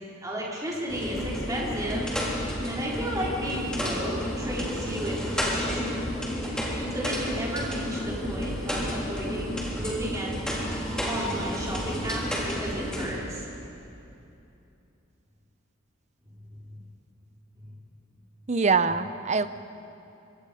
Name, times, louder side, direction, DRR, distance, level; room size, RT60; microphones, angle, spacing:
voice 1, 0.2-2.1 2.5-6.1 6.9-10.3 11.1-13.4 17.6-17.7, equal, 15° right, -5 dB, 4.0 m, -33 dB
sound 1, 0.9-13.1, equal, 5° left, 3.5 m, -31 dB
voice 2, 18.5-19.5, right 4 dB, 35° right, 12 dB, 0.6 m, -23 dB
25.5 x 22.5 x 5.1 m, 2.8 s
head